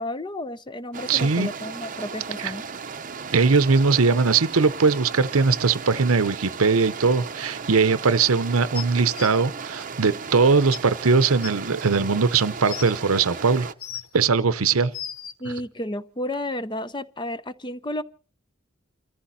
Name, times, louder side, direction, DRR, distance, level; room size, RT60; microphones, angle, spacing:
voice 1, 0.0-2.6 15.4-18.0, left 1 dB, 20° left, 0.7 m, -32 dB
sound 1, 0.9-13.7, right 5 dB, 40° right, 0.7 m, -36 dB
voice 2, 1.1-1.5 2.4-2.5 3.3-13.7 14.1-14.9, right 4 dB, 85° right, 0.8 m, -20 dB
sound 2, 8.7-9.3 10.3-10.4 10.7-10.8 11.4-11.5 12.3-12.9 13.6-14.2 14.7-15.3 16.3-16.4, left 9 dB, 80° left, 1.0 m, -36 dB
29.5 x 14.5 x 2.8 m
head